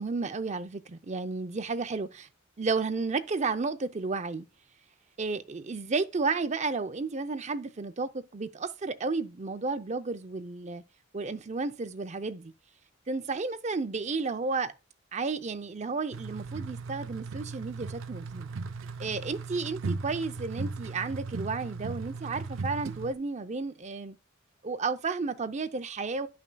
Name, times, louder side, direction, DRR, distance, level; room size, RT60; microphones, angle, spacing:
voice 1, 0.0-2.3 2.6-4.5 5.2-10.8 11.1-12.5 13.1-14.7 15.1-18.5 19.0-24.2 24.6-26.3, right 4 dB, 35° right, 0.6 m, -32 dB
sound 1, 16.1-23.1, right 4 dB, 85° right, 0.6 m, -37 dB
10.5 x 5.8 x 2.3 m
head